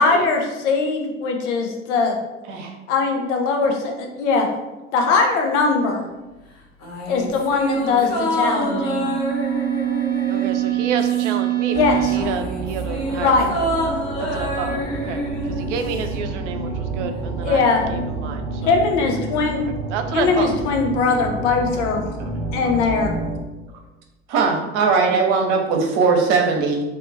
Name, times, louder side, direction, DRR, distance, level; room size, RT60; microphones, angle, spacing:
voice 1, 0.0-2.2 2.9-4.5 4.9-6.0 7.1-9.1 11.7-12.1 13.2-13.5 17.4-17.8 18.6-19.6 20.1-22.0 22.5-23.1, left 4 dB, 75° left, 2 dB, 0.7 m, -20 dB
sound 1, 6.8-11.6 11.8-16.2 16.4-16.5, equal, 50° left, 1.0 m, -27 dB
sound 2, 7.8-12.2, right 15 dB, 25° right, 0.4 m, -24 dB
voice 2, 7.9-8.2 10.3-13.5 14.2-18.8 19.6-20.6, right 6 dB, 80° right, 6 dB, 0.5 m, -30 dB
sound 3, 11.7-23.4, right 2 dB, 5° left, 0.9 m, -29 dB
voice 3, 24.3-26.8, right 4 dB, 60° right, 2 dB, 0.8 m, -19 dB
2.6 x 2.4 x 3.8 m, 1.1 s
hypercardioid pair, 70°, 35 cm